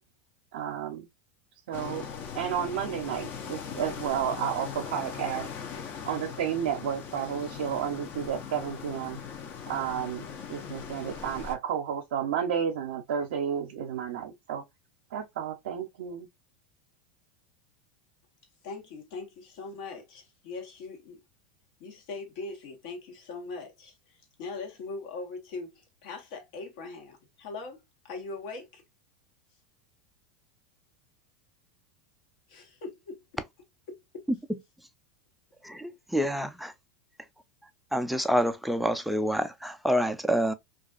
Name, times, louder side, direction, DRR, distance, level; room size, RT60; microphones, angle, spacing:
voice 1, 0.5-1.1 1.7-2.1 2.3-5.5 6.0-9.2 9.7-10.2 10.5-14.6 15.1-16.3, right 8 dB, 80° right, 0.5 m, -31 dB
sound 1, 1.7-11.5, left 7 dB, 40° left, 0.6 m, -40 dB
voice 2, 18.6-21.2 21.8-28.8 32.5-33.2 33.9-34.3, left 3 dB, 65° left, 1.1 m, -41 dB
voice 3, 35.6-36.7 37.9-40.5, equal, ahead, 0.3 m, -27 dB
2.4 x 2.3 x 2.3 m
hypercardioid pair, 115°, 5 cm